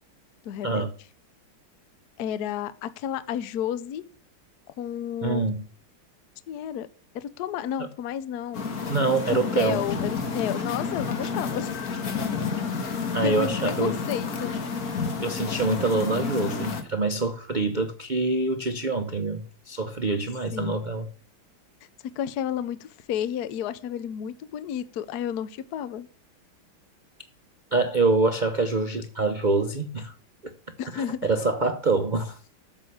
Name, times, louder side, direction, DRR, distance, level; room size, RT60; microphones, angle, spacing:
voice 1, 0.4-0.9 2.2-4.0 4.8-5.5 6.5-6.9 7.1-8.7 9.3-11.7 13.2-14.5 20.5-20.9 22.2-26.1 30.8-31.3, left 10 dB, 65° left, 1.1 m, -31 dB
voice 2, 5.2-5.6 7.8-7.9 8.9-9.8 13.1-14.0 15.2-21.1 27.7-30.1 30.4-30.5 30.9-32.4, right 3 dB, 80° right, 0.4 m, -25 dB
sound 1, 8.5-16.8, left 5 dB, 50° left, 1.8 m, -30 dB
8.8 x 6.7 x 8.5 m
omnidirectional pair, 2.2 m